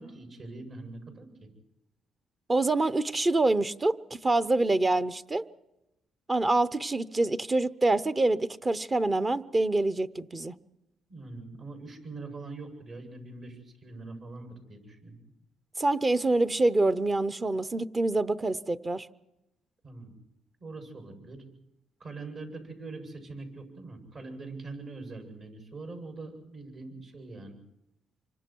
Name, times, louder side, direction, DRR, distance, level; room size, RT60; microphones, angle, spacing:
voice 1, 0.0-1.5 11.1-15.2 19.8-20.1 20.6-21.4 22.0-27.6, right 3 dB, 55° right, 8.0 m, -43 dB
voice 2, 2.5-5.4 6.3-10.5 15.8-19.1, right 2 dB, 25° right, 0.8 m, -26 dB
27.0 x 25.0 x 4.7 m
cardioid pair, 90°, 0 cm